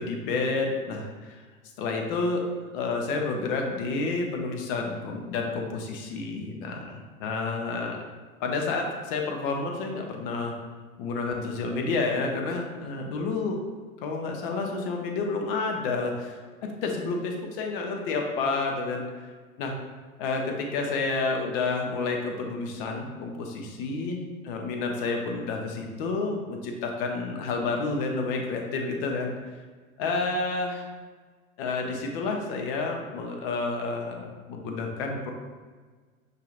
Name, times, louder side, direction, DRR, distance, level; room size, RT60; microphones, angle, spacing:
voice 1, 0.0-1.4 1.8-2.4 2.7-8.0 8.4-10.5 11.0-13.6 14.0-16.4 16.8-19.0 19.6-19.7 20.2-29.3 30.0-30.9 31.6-35.3, left 3 dB, 40° left, 2 dB, 0.8 m, -30 dB
6.4 x 2.8 x 2.5 m, 1.4 s
figure-of-eight pair, 90°, 42 cm